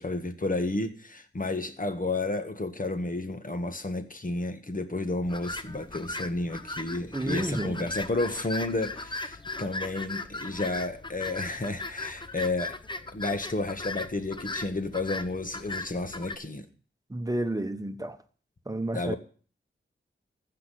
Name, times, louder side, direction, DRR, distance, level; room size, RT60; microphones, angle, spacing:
voice 1, 0.0-12.8 13.1-16.7 18.9-19.2, left 2 dB, 40° left, 1.6 m, -31 dB
sound 1, 5.2-16.4, left 2 dB, 20° left, 0.8 m, -38 dB
voice 2, 7.1-7.8 17.1-18.2 18.7-19.2, right 1 dB, 15° right, 1.1 m, -31 dB
15.0 x 6.1 x 7.6 m
wide cardioid pair, 75°, 21 cm